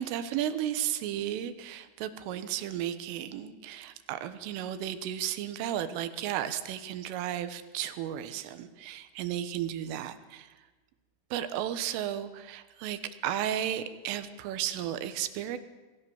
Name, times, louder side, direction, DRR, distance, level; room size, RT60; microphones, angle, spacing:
voice 1, 0.0-10.5 11.3-15.6, right 11 dB, 85° right, 11 dB, 3.7 m, -34 dB
27.5 x 19.5 x 7.1 m, 1.2 s
omnidirectional pair, 5.7 m